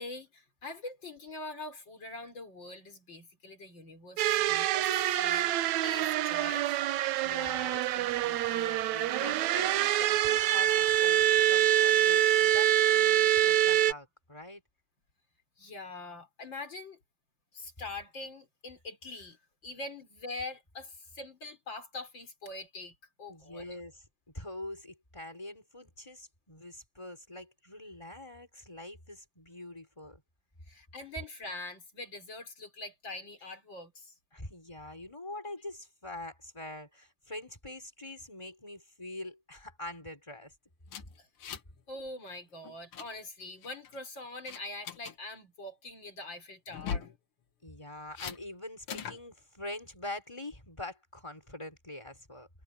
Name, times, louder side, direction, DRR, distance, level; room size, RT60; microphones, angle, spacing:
voice 1, 0.0-5.6 5.8-6.7 15.6-17.0 17.5-23.6 30.7-34.1 41.2-41.3 41.9-47.1, left 2 dB, 40° left, 5.1 m, -43 dB
sound 1, 4.2-13.9, right 12 dB, 75° right, 2.1 m, -26 dB
voice 2, 7.2-14.6 23.3-24.1 24.3-30.2 34.3-40.5 47.6-52.5, left 1 dB, 10° left, 5.4 m, -44 dB
sound 2, 40.9-41.8 42.1-42.3 42.6-43.1 43.6-44.0 44.5-45.1 46.7-47.2 48.1-48.4 48.9-49.2, left 7 dB, 55° left, 2.0 m, -39 dB
omnidirectional pair, 3.3 m